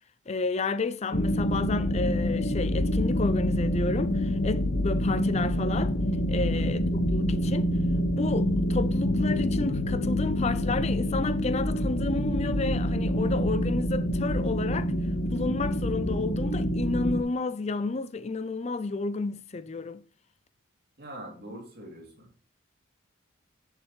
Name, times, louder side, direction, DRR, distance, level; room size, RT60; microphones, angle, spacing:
voice 1, 0.3-5.9 6.3-7.7 8.2-14.9 15.3-20.0, left 3 dB, 30° left, 0.4 m, -31 dB
sound 1, 1.1-17.2, equal, 55° left, 1.0 m, -26 dB
voice 2, 6.3-6.7 21.0-22.3, right 1 dB, 50° right, 3.0 m, -43 dB
9.5 x 7.3 x 3.2 m
head